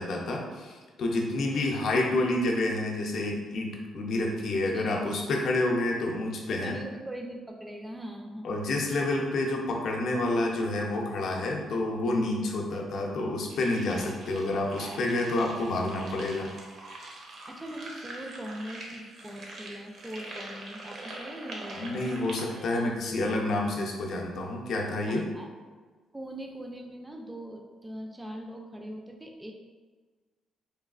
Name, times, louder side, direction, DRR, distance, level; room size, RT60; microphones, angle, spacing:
voice 1, 0.0-6.8 8.4-16.5 21.8-25.3, left 2 dB, 65° left, 0 dB, 0.5 m, -29 dB
voice 2, 1.4-1.8 4.7-5.2 6.5-8.6 14.0-14.2 17.5-23.3 25.1-25.5 26.1-29.5, right 1 dB, 10° right, 1 dB, 0.3 m, -41 dB
sound 1, 13.5-22.6, right 2 dB, 60° right, 0.6 m, -44 dB
3.2 x 2.3 x 2.3 m, 1.4 s
cardioid pair, 90°, 0 cm